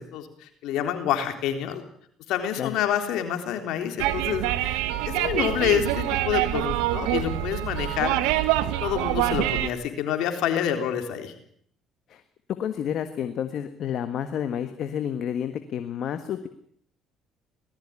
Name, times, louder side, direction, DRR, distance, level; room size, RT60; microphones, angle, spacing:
voice 1, 0.0-1.8 2.3-8.2 8.6-11.3, left 9 dB, 75° left, 6 dB, 3.7 m, -28 dB
sound 1, 4.0-9.7, right 14 dB, 90° right, 1.2 m, -25 dB
voice 2, 12.6-16.5, left 9 dB, 60° left, 9 dB, 1.6 m, -30 dB
19.5 x 14.0 x 9.8 m, 0.63 s
supercardioid pair, 85°, 0 cm